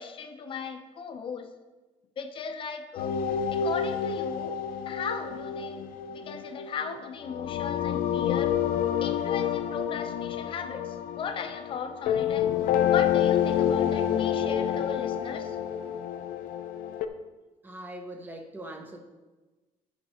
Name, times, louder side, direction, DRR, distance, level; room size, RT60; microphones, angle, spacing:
voice 1, 0.0-1.5 2.2-3.1 3.5-4.6 4.9-5.8 6.1-8.6 9.0-12.5 12.9-15.5, left 6 dB, 35° left, 6 dB, 0.8 m, -37 dB
sound 1, 3.0-17.1, left 9 dB, 75° left, 0.6 m, -28 dB
voice 2, 17.6-19.0, right 1 dB, 15° right, 4 dB, 0.9 m, -41 dB
10.5 x 6.0 x 4.4 m, 1.2 s
cardioid pair, 170°, 15 cm